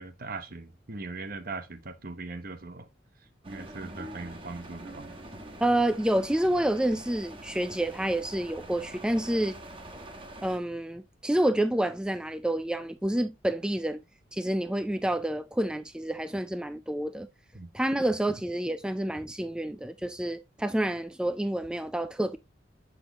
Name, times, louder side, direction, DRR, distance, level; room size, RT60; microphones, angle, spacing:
voice 1, 0.0-2.9 3.5-5.1 17.5-17.7, right 3 dB, 50° right, 0.9 m, -40 dB
sound 1, 3.4-10.6, right 1 dB, 30° right, 1.0 m, -44 dB
voice 2, 5.6-9.6 10.4-14.0 14.3-17.3 17.7-22.4, right 1 dB, 5° right, 0.3 m, -28 dB
7.6 x 6.2 x 2.9 m
head